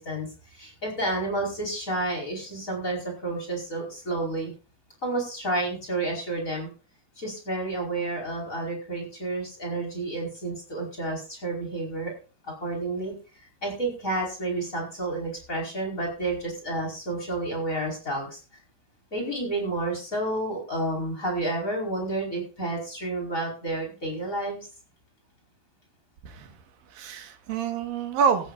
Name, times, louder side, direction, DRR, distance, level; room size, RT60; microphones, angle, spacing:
voice 1, 0.0-4.5 5.0-6.7 7.2-12.1 12.4-13.1 13.6-18.4 19.1-24.6, right 2 dB, 20° left, 1 dB, 4.9 m, -30 dB
voice 2, 26.2-26.5 26.9-28.5, right 6 dB, 75° right, 6 dB, 3.2 m, -27 dB
17.5 x 13.5 x 2.6 m, 0.35 s
omnidirectional pair, 4.3 m